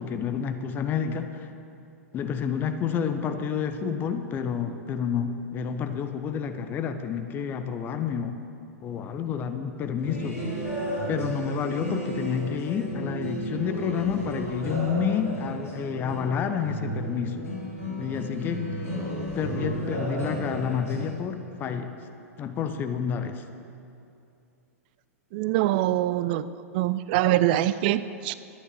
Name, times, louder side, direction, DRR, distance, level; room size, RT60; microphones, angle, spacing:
voice 1, 0.0-1.5 2.1-8.4 8.8-10.5 11.1-17.5 18.0-18.8 19.3-21.9 22.4-23.4, left 7 dB, 25° left, 8 dB, 0.8 m, -29 dB
sound 1, 10.0-21.1, right 1 dB, 70° left, 4.1 m, -33 dB
voice 2, 25.3-26.5 26.7-28.3, right 14 dB, 35° right, 15 dB, 0.4 m, -24 dB
12.5 x 9.5 x 7.5 m, 2.6 s
figure-of-eight pair, 105°, 8 cm